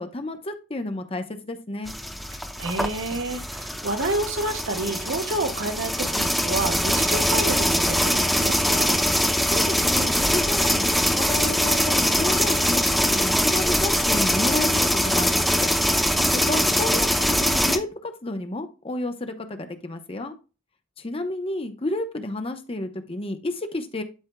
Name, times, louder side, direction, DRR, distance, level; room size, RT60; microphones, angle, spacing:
voice 1, 0.0-1.9 9.4-15.7 16.3-20.3 21.0-24.0, left 2 dB, 30° left, 7 dB, 0.8 m, -31 dB
sound 1, 1.9-17.8, equal, ahead, 0.6 m, -22 dB
voice 2, 2.6-9.0 16.1-16.7, right 2 dB, 70° right, 6 dB, 1.1 m, -29 dB
11.5 x 4.4 x 2.2 m, 0.31 s
head